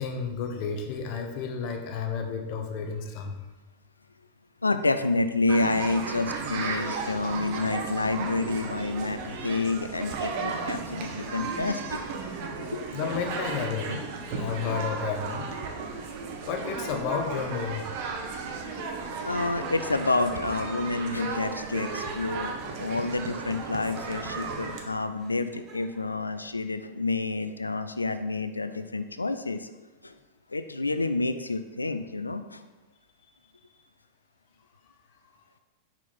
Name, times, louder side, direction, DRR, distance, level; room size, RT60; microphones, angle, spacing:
voice 1, 0.0-3.4 12.9-15.5 16.5-18.2, left 6 dB, 45° left, 4 dB, 0.8 m, -32 dB
voice 2, 4.6-12.0 12.7-12.8 18.7-18.8 19.2-29.7 30.0-30.1 30.5-32.6, left 3 dB, 80° left, 10 dB, 0.3 m, -29 dB
sound 1, 5.5-24.8, right 4 dB, 45° right, 0.8 m, -35 dB
Laughter, 16.2-26.2, right 3 dB, 30° right, 1.3 m, -47 dB
5.6 x 4.4 x 4.1 m, 1.2 s
figure-of-eight pair, 90°, 0 cm